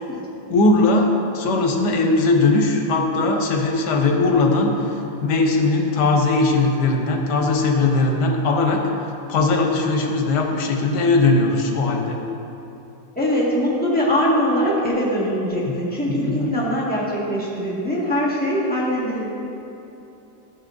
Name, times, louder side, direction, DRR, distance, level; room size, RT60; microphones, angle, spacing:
voice 1, 0.5-8.8 9.3-12.2 15.7-15.8 16.1-16.5, left 3 dB, 85° left, 2 dB, 1.4 m, -19 dB
voice 2, 13.1-19.3, equal, 5° left, -8 dB, 1.4 m, -22 dB
12.5 x 6.4 x 2.5 m, 2.9 s
omnidirectional pair, 1.7 m